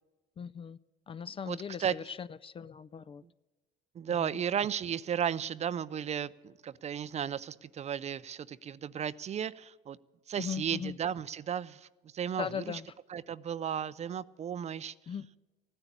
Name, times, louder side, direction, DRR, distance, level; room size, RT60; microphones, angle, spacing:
voice 1, 0.4-0.8 1.1-3.2 4.2-4.3 10.4-11.0 12.4-12.9 15.1-15.3, left 7 dB, 30° left, 18 dB, 0.4 m, -38 dB
voice 2, 1.4-2.0 4.0-10.0 10.3-11.9 12.1-12.8 13.1-14.9, right 8 dB, 35° right, 18 dB, 0.5 m, -34 dB
15.5 x 9.9 x 8.4 m, 1.2 s
cardioid pair, 110°, 20 cm